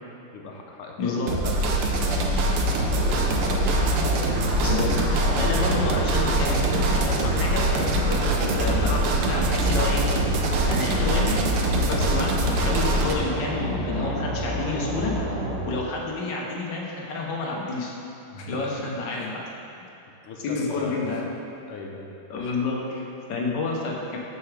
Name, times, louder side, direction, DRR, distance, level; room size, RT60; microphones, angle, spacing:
voice 1, 0.3-3.4 18.3-18.8 19.1-19.4 20.2-21.2 21.7-22.1 22.4-22.5, left 3 dB, 90° left, 0 dB, 1.7 m, -38 dB
voice 2, 1.0-1.3 4.6-4.9 5.3-10.1 10.7-11.4 11.7-15.1 15.6-17.9 18.5-19.4 19.8-19.9 20.4-21.2 22.3-24.2, left 3 dB, 60° left, -2 dB, 1.5 m, -29 dB
sound 1, 1.3-13.2, right 1 dB, 90° right, 1.6 m, -24 dB
sound 2, 2.6-15.6, equal, 65° right, 1.9 m, -29 dB
11.5 x 4.7 x 3.3 m, 2.7 s
omnidirectional pair, 2.4 m